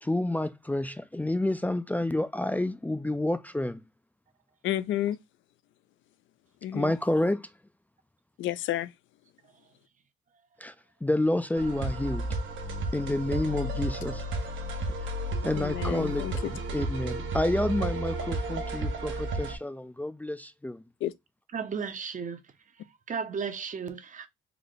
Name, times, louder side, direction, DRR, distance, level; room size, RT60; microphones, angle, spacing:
voice 1, 0.0-3.8 6.7-7.5 10.6-10.7 11.0-12.3 12.9-14.2 15.0-15.1 15.4-20.8, left 1 dB, 10° left, 0.3 m, -29 dB
voice 2, 4.6-5.2 6.6-6.9 8.4-8.9 15.5-16.5 21.0-21.1, left 13 dB, 75° left, 0.4 m, -31 dB
sound 1, 11.6-19.6, right 2 dB, 75° right, 0.9 m, -32 dB
voice 3, 21.5-22.4 23.1-24.3, right 6 dB, 40° right, 0.6 m, -34 dB
3.4 x 2.1 x 3.9 m
cardioid pair, 90°, 20 cm